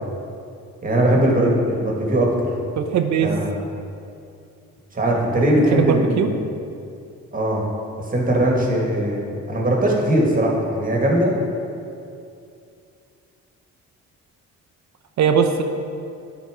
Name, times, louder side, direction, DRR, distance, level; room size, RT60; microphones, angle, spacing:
voice 1, 0.8-2.5 3.2-3.5 4.9-6.4 7.3-7.6 8.1-11.3, right 1 dB, 30° right, -2 dB, 1.7 m, -20 dB
voice 2, 2.8-3.3 5.7-6.3 15.2-15.6, right 7 dB, 65° right, 7 dB, 0.7 m, -19 dB
10.0 x 4.1 x 4.8 m, 2.5 s
cardioid pair, 90°, 30 cm